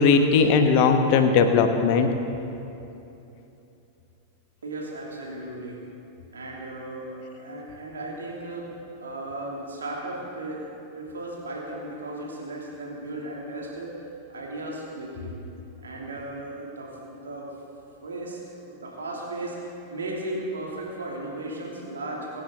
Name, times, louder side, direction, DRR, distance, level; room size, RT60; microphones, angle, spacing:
voice 1, 0.0-2.1, left 5 dB, 45° left, 7 dB, 1.1 m, -18 dB
voice 2, 4.6-5.8 6.3-8.7 9.0-10.6 10.9-14.0 14.3-15.3 15.8-17.5 18.0-18.4 18.6-22.4, right 2 dB, 70° right, -3 dB, 2.9 m, -35 dB
23.0 x 8.8 x 3.9 m, 2.9 s
figure-of-eight pair, 90°, 0 cm